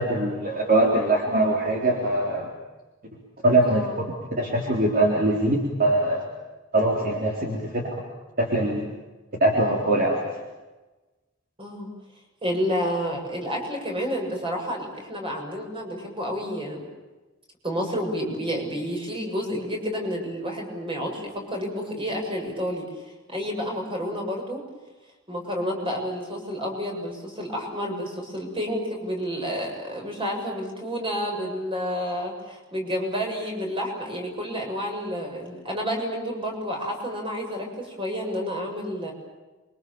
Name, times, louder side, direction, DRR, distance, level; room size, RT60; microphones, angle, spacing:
voice 1, 0.0-2.5 3.4-3.9 4.4-6.2 6.7-7.8 8.4-8.8 9.4-10.2, right 1 dB, 45° right, -1 dB, 3.9 m, -22 dB
voice 2, 3.6-4.0 11.6-11.9 12.4-16.9 17.6-24.6 25.3-39.1, equal, 25° right, 1 dB, 7.3 m, -30 dB
28.0 x 25.0 x 7.3 m, 1.2 s
head